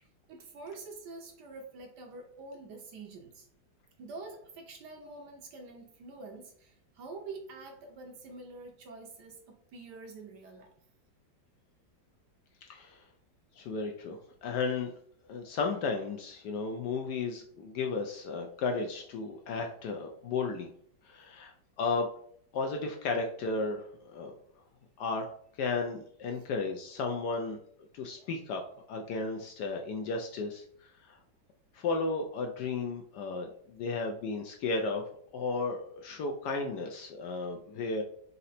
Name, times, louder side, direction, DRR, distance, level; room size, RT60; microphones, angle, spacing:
voice 1, 0.3-3.5 4.0-10.7, right 3 dB, 70° right, 3 dB, 1.2 m, -46 dB
voice 2, 12.7-13.0 13.6-14.9 15.3-20.7 21.1-22.1 22.5-24.3 25.0-25.3 25.6-27.6 27.9-28.6 28.9-30.6 31.1-31.2 31.7-35.0 35.3-38.0, left 4 dB, 70° left, 3 dB, 1.0 m, -34 dB
4.2 x 2.7 x 4.0 m, 0.62 s
omnidirectional pair, 2.1 m